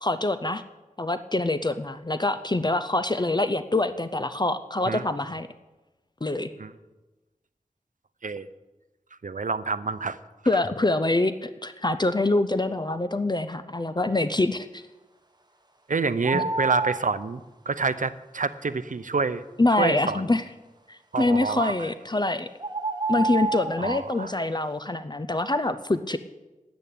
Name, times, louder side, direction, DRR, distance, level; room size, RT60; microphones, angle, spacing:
voice 1, 0.0-0.6 1.0-5.5 6.2-6.5 10.5-14.8 16.3-16.4 19.6-20.4 20.9-22.5 23.1-26.2, left 2 dB, 30° left, 11 dB, 0.6 m, -25 dB
voice 2, 9.2-10.2 10.5-10.6 15.9-19.4 19.7-20.2 21.1-21.9 23.8-24.3, right 4 dB, 70° right, 13 dB, 0.6 m, -28 dB
sound 1, 16.2-17.2 21.8-21.9 22.6-23.9, right 3 dB, 30° right, 1.3 m, -28 dB
10.5 x 9.0 x 8.5 m, 1.1 s
wide cardioid pair, 55°, 14 cm